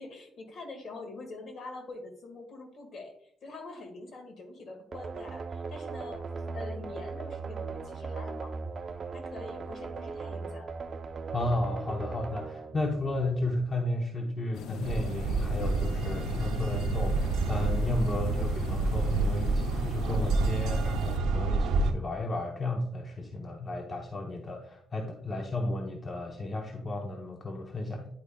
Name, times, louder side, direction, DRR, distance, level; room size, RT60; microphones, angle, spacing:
voice 1, 0.0-8.6 9.1-10.8, left 2 dB, 60° left, 4 dB, 1.6 m, -45 dB
sound 1, 4.9-13.6, right 4 dB, 45° right, 0.5 m, -38 dB
voice 2, 11.3-28.1, left 2 dB, 35° left, 3 dB, 0.7 m, -33 dB
sound 2, 14.5-21.2, left 7 dB, 80° left, 0.4 m, -40 dB
sound 3, 14.8-21.9, right 3 dB, 90° right, 0.6 m, -29 dB
9.5 x 4.9 x 2.2 m, 0.69 s
cardioid pair, 90°, 0 cm